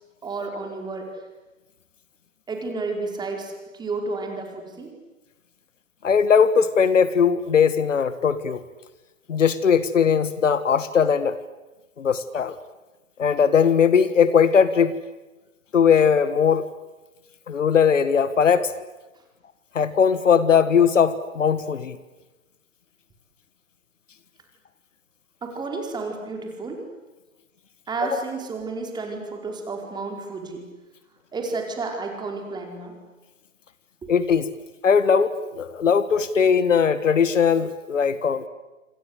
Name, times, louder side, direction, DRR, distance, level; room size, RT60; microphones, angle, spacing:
voice 1, 0.2-1.1 2.5-4.9 25.4-26.8 27.9-30.6 31.3-32.9 34.0-34.1, right 3 dB, 10° right, 2 dB, 4.9 m, -31 dB
voice 2, 6.0-8.6 9.3-11.4 12.0-12.6 13.2-15.0 15.7-16.6 17.5-18.7 19.7-22.0 28.1-28.2 34.1-34.5 34.8-38.4, left 7 dB, 65° left, 14 dB, 1.7 m, -19 dB
27.5 x 26.0 x 8.3 m, 1.1 s
figure-of-eight pair, 125°, 41 cm